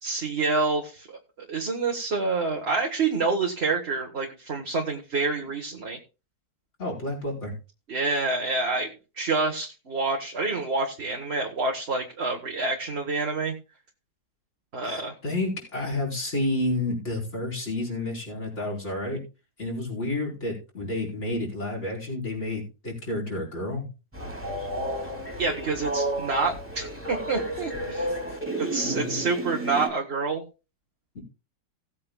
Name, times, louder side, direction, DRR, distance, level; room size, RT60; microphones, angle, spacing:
voice 1, 0.0-6.0 7.9-8.9 9.2-13.5 14.7-15.1 25.4-28.1 28.7-30.4, right 3 dB, 35° right, 1 dB, 1.5 m, -27 dB
voice 2, 6.8-7.5 14.8-19.2 19.6-23.9 28.1-28.4 28.8-29.2 31.1-31.2, left 2 dB, 35° left, -3 dB, 5.0 m, -30 dB
Train, 24.1-29.9, right 1 dB, 5° right, 2.8 m, -32 dB
18.0 x 8.6 x 2.3 m, 0.31 s
omnidirectional pair, 2.0 m